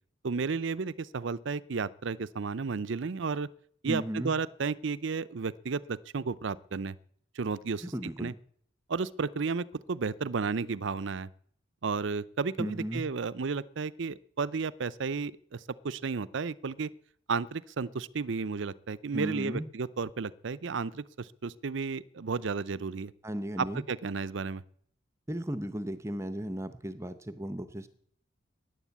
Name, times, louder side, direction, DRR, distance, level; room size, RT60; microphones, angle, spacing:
voice 1, 0.2-3.5 3.8-7.0 7.4-7.8 8.2-8.3 8.9-11.3 11.8-15.6 15.8-16.9 17.3-23.1 23.6-24.6, right 4 dB, 60° right, 17 dB, 0.5 m, -33 dB
voice 2, 3.9-4.3 7.8-8.4 12.6-13.0 19.1-19.7 23.2-23.8 25.3-27.9, equal, 15° right, 12 dB, 0.7 m, -35 dB
14.5 x 10.0 x 8.3 m, 0.63 s
head